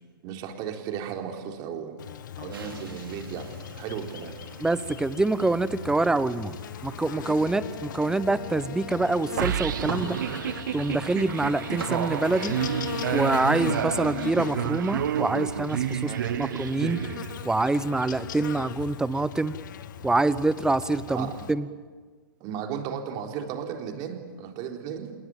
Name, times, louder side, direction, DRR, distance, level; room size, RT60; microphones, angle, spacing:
voice 1, 0.2-2.0 2.4-4.3 15.9-16.5 21.1-21.3 22.4-25.1, right 8 dB, 35° right, 3 dB, 4.0 m, -35 dB
Buzz, 2.0-21.5, left 10 dB, 55° left, 1.5 m, -39 dB
sound 1, 2.5-13.6, right 3 dB, 75° right, 3.5 m, -45 dB
voice 2, 4.6-6.6 6.8-10.2 10.7-12.5 13.1-16.1 16.4-17.0 17.4-19.5 20.0-21.7, right 2 dB, 5° right, 16 dB, 0.9 m, -25 dB
sound 2, 9.4-17.7, right 10 dB, 60° right, 1.0 m, -30 dB
27.5 x 21.5 x 9.0 m, 1.4 s
figure-of-eight pair, 110°, 12 cm